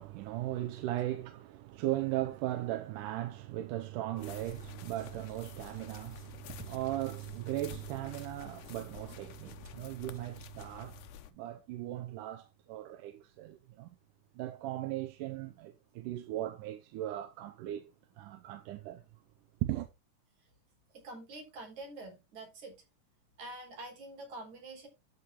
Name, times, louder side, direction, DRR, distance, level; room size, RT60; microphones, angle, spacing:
voice 1, 0.0-11.0 11.3-13.9 14.4-17.9 18.2-19.0 19.6-19.9, right 14 dB, 85° right, 2.2 m, -38 dB
sound 1, 4.2-11.3, left 10 dB, 80° left, 2.2 m, -51 dB
sound 2, 4.2-10.2, right 1 dB, 10° right, 1.5 m, -56 dB
voice 2, 20.9-22.8 23.4-24.9, right 2 dB, 65° right, 4.7 m, -46 dB
12.5 x 5.9 x 3.0 m
omnidirectional pair, 3.7 m